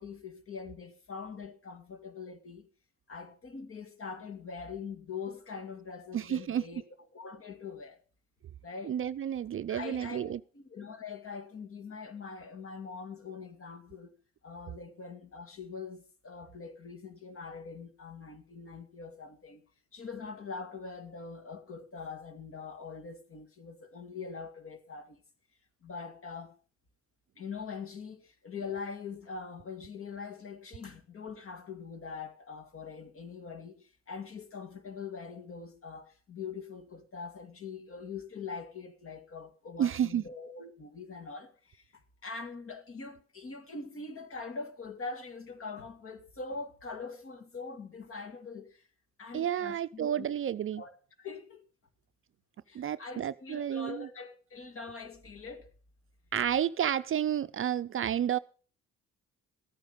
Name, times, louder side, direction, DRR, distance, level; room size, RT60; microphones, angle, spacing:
voice 1, 0.0-2.7 3.1-6.8 7.1-8.0 8.6-9.0 9.7-14.1 14.4-19.6 19.9-25.2 25.8-26.6 27.4-48.8 49.2-50.3 50.8-50.9 51.2-51.6 52.7-55.7, left 5 dB, 45° left, 2.2 m, -43 dB
voice 2, 6.1-6.6 8.8-10.4 39.8-40.2 49.3-50.8 52.7-54.1 56.3-58.4, right 10 dB, 45° right, 0.5 m, -31 dB
14.0 x 9.1 x 5.2 m
cardioid pair, 90°, 30 cm